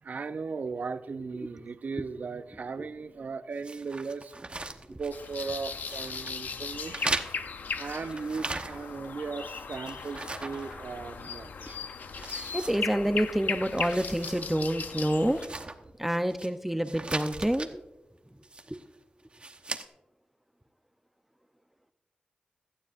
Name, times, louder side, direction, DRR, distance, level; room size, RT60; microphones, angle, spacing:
voice 1, 0.0-4.4 4.6-7.4 7.8-11.8, right 4 dB, 65° right, 12 dB, 0.6 m, -37 dB
sound 1, 3.6-5.6 5.8-6.4 6.9-9.1 9.4-11.3 11.7-11.8 12.1-13.3 13.6-14.5 14.8-14.9 15.3-16.5 16.8-17.7 18.4-18.9 19.3-19.8, right 2 dB, 40° right, 0.9 m, -38 dB
sound 2, 5.1-15.5, left 5 dB, 85° left, 0.6 m, -38 dB
voice 2, 12.5-15.4 16.0-17.8 18.7-18.8, right 1 dB, 5° right, 9 dB, 0.6 m, -28 dB
16.5 x 12.0 x 2.5 m, 0.97 s
cardioid pair, 65°, 3 cm